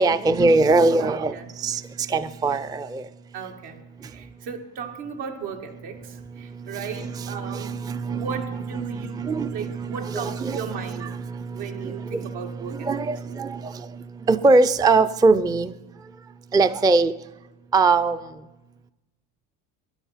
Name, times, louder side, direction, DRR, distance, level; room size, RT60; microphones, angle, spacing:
voice 1, 0.0-3.1 6.7-15.7 16.5-17.1 17.7-18.2, right 3 dB, 10° right, 14 dB, 0.4 m, -22 dB
voice 2, 1.0-1.5 2.4-2.6 3.3-7.8 8.1-11.2 11.5-12.9, right 6 dB, 80° right, 3 dB, 2.0 m, -36 dB
13.0 x 10.5 x 5.7 m, 1.0 s
supercardioid pair, 100°, 38 cm